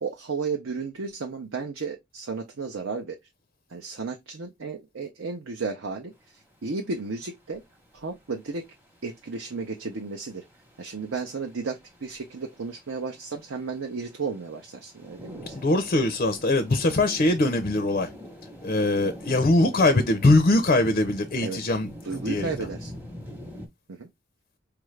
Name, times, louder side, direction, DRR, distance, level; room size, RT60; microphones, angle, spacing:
voice 1, 0.0-3.2 3.7-6.1 6.6-7.6 7.9-8.6 9.0-10.4 10.8-15.5 21.4-21.6 22.0-22.9 24.0-24.1, right 4 dB, 70° right, 0.6 m, -33 dB
sound 1, 6.1-23.7, equal, 10° right, 0.9 m, -45 dB
voice 2, 15.5-18.1 18.6-21.9 22.2-22.5, left 2 dB, 40° left, 0.4 m, -22 dB
4.7 x 2.5 x 3.2 m
head